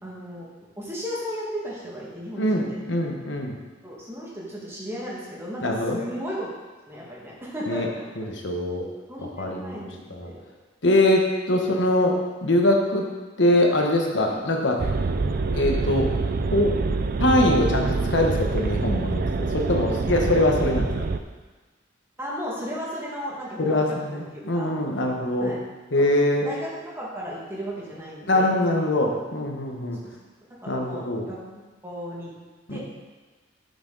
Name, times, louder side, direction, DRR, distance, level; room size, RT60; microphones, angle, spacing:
voice 1, 0.0-0.5 0.8-2.8 3.8-6.5 6.9-8.0 9.1-10.4 11.5-11.8 14.3-14.4 22.2-24.8 25.4-25.6 26.0-26.1 26.4-28.6 30.0-30.1 30.6-32.3 32.7-32.8, equal, 15° right, -5 dB, 2.0 m, -35 dB
voice 2, 2.3-3.6 5.6-6.0 7.7-7.9 8.2-8.9 9.4-10.3 10.8-12.2 12.4-13.1 13.4-14.8 15.5-16.1 16.5-16.7 17.2-21.1 23.6-25.5 25.9-26.5 28.3-30.0 30.7-31.3 32.7-32.8, left 1 dB, 65° left, 1 dB, 1.3 m, -23 dB
sound 1, 14.8-21.2, right 3 dB, 50° right, 0.4 m, -26 dB
9.3 x 7.1 x 4.0 m, 1.3 s
head